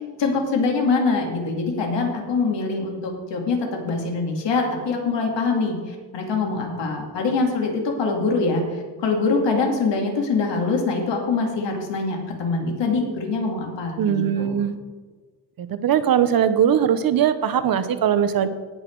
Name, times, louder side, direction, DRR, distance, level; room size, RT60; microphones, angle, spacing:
voice 1, 0.2-14.5, left 4 dB, 85° left, 1 dB, 2.5 m, -24 dB
voice 2, 14.0-14.8 15.6-18.5, right 9 dB, 55° right, 11 dB, 0.8 m, -20 dB
18.0 x 6.1 x 4.6 m, 1.4 s
wide cardioid pair, 175°, 42 cm